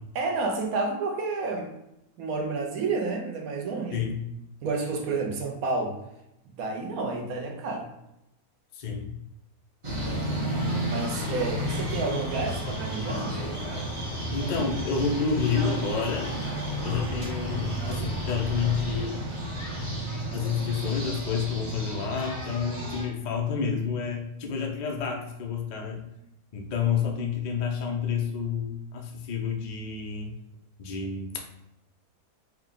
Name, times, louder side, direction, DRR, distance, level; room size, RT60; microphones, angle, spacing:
voice 1, 0.1-1.7 2.2-4.0 4.6-5.9 6.6-7.9 9.9-10.6 10.9-13.5, right 3 dB, 75° right, 2 dB, 1.1 m, -30 dB
voice 2, 3.9-4.2 8.7-9.1 14.3-16.3 16.8-19.2 20.3-26.0 26.5-30.3 30.8-31.4, left 6 dB, 70° left, 1 dB, 0.4 m, -29 dB
sound 1, 9.8-23.0, equal, 30° right, 0.6 m, -32 dB
4.5 x 2.2 x 3.7 m, 0.86 s
omnidirectional pair, 1.6 m